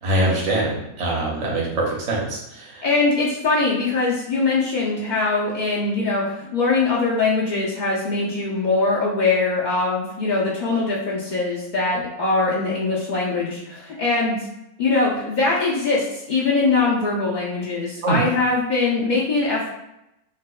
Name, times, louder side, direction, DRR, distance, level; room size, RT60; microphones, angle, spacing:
voice 1, 0.0-2.8 18.0-18.2, right 1 dB, 60° right, -3 dB, 1.1 m, -23 dB
voice 2, 2.8-14.4 14.8-19.7, left 3 dB, 80° left, -5 dB, 0.4 m, -22 dB
5.0 x 2.1 x 2.3 m, 0.89 s
omnidirectional pair, 1.5 m